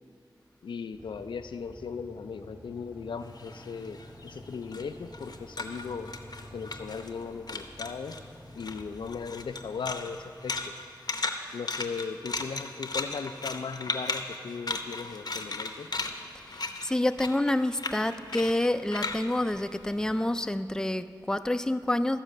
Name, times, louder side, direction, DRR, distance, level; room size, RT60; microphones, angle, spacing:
voice 1, 0.6-6.1 6.5-8.2 8.6-10.7 11.5-15.9, left 5 dB, 80° left, 9 dB, 0.4 m, -37 dB
Motorcycle / Idling, 0.9-10.9, equal, 25° right, 1.6 m, -50 dB
sound 1, 3.3-7.2 7.5-8.2 8.6-20.4, left 3 dB, 60° left, 0.7 m, -36 dB
voice 2, 16.8-22.2, left 1 dB, 10° left, 10 dB, 0.4 m, -28 dB
14.0 x 4.9 x 6.5 m, 2.4 s
cardioid pair, 45°, 8 cm